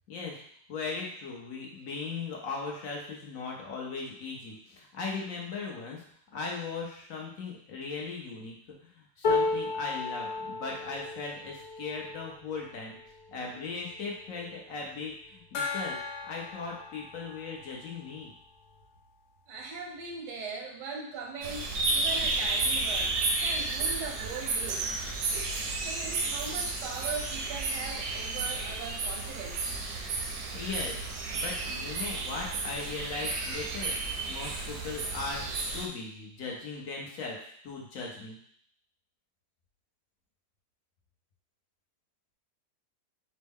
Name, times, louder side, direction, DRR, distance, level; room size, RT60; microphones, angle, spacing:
voice 1, 0.1-0.4 0.7-6.0 6.3-8.5 8.8-13.0 13.3-16.0 16.3-18.3 30.5-31.1 31.3-33.9 34.3-35.5 35.7-38.4, left 4 dB, 60° left, -1 dB, 1.1 m, -38 dB
sound 1, 9.2-15.4 16.0-16.2 16.5-17.2 18.2-18.3, left 3 dB, 20° left, 0.8 m, -34 dB
Gong, 15.5-18.8, left 5 dB, 80° left, 1.2 m, -39 dB
voice 2, 19.5-24.9 25.3-29.7, right 4 dB, 90° right, 1 dB, 1.4 m, -40 dB
sound 2, 21.4-35.9, right 3 dB, 70° right, 1.0 m, -32 dB
5.2 x 2.1 x 3.5 m, 0.63 s
omnidirectional pair, 1.8 m